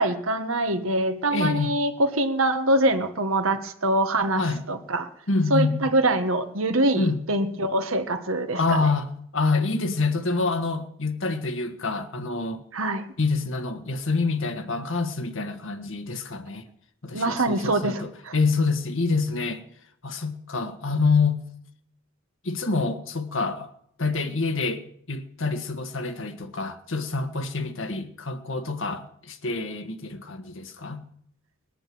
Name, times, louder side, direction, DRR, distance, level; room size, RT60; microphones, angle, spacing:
voice 1, 0.0-5.1 5.5-8.9 12.7-13.1 17.1-18.3, right 1 dB, 80° right, 1.5 m, -24 dB
voice 2, 1.3-1.8 4.4-4.6 5.3-5.9 6.9-7.2 8.5-12.6 13.2-16.6 17.0-19.6 20.0-21.5 22.4-23.7 24.0-24.8 25.1-31.0, left 3 dB, 65° left, 1.5 m, -26 dB
20.5 x 9.0 x 7.7 m
head